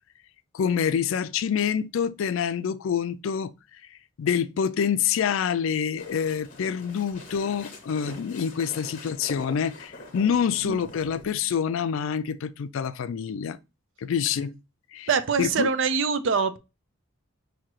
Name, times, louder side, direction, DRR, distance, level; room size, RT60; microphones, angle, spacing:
voice 1, 0.5-3.5 4.2-13.6 14.0-14.5 14.9-15.1 15.4-15.7, left 7 dB, 70° left, 0.3 m, -26 dB
sound 1, 6.0-11.3, left 2 dB, 40° left, 1.0 m, -44 dB
voice 2, 15.1-16.6, right 5 dB, 65° right, 0.5 m, -24 dB
5.9 x 2.8 x 3.0 m
head